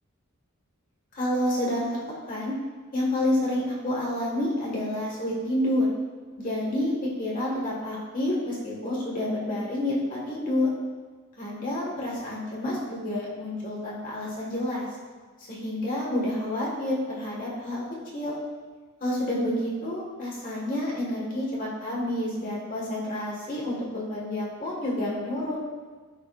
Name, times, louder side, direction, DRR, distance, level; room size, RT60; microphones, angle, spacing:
voice 1, 1.1-2.5 2.9-5.9 6.4-10.7 11.4-14.9 15.5-17.8 18.1-18.3 19.0-25.6, left 1 dB, 40° left, -5 dB, 1.6 m, -29 dB
10.5 x 3.8 x 2.5 m, 1.5 s
head